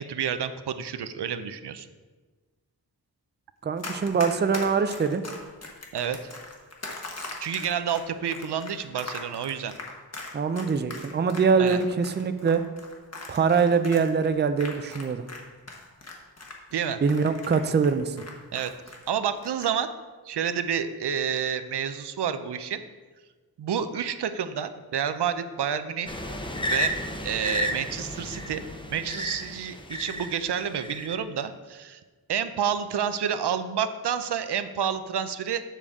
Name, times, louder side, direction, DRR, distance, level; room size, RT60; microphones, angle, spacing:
voice 1, 0.0-1.9 5.9-6.2 7.4-9.7 11.6-11.8 16.7-17.0 18.5-18.7 19.1-19.9 20.3-22.8 23.6-26.1 26.6-26.9 27.2-28.6 28.9-32.0 32.3-35.6, right 8 dB, 85° right, 11 dB, 0.5 m, -29 dB
voice 2, 3.6-5.2 10.3-12.6 13.3-15.2 17.0-18.2, right 5 dB, 30° right, 10 dB, 0.4 m, -23 dB
Run, 3.8-15.4 15.7-19.1 19.4-19.7, left 2 dB, 40° left, 1.2 m, -40 dB
sound 1, 26.1-30.3 30.8-31.1, equal, 10° left, 0.7 m, -32 dB
7.3 x 6.8 x 3.6 m, 1.3 s
wide cardioid pair, 105°, 39 cm